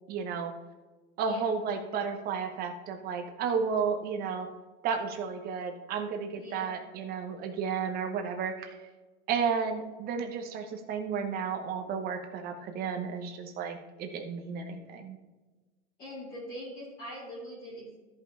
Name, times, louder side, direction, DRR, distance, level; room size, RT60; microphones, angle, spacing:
voice 1, 0.1-0.5 1.2-4.5 4.8-8.7 9.3-15.2, right 6 dB, 25° right, 4 dB, 0.9 m, -32 dB
voice 2, 1.2-1.5 6.4-6.7 16.0-18.0, equal, 25° left, -10 dB, 3.0 m, -42 dB
13.5 x 5.5 x 3.3 m, 1.2 s
supercardioid pair, 155°, 39 cm